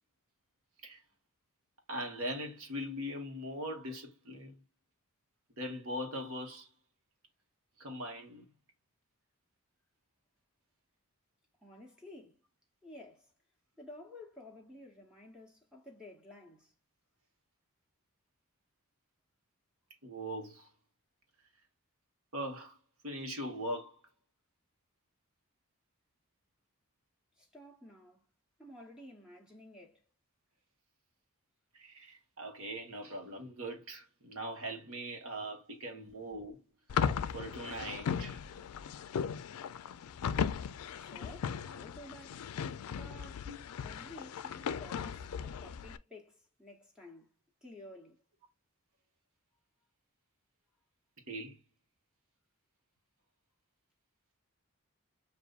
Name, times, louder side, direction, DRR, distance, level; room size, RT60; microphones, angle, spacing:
voice 1, 1.9-4.6 5.6-6.7 7.8-8.5 20.0-20.7 22.3-22.8 23.0-24.0 31.7-36.6 36.9-38.4 43.5-43.6 51.3-51.6, equal, 70° right, 1.3 m, -41 dB
voice 2, 11.6-12.4 12.8-13.3 13.8-16.7 27.4-28.3 28.6-30.0 41.0-42.5 42.9-43.4 43.8-47.3 47.6-48.2, left 1 dB, 5° right, 0.8 m, -53 dB
sound 1, 36.9-46.0, left 7 dB, 85° left, 0.4 m, -37 dB
6.6 x 2.6 x 2.4 m
head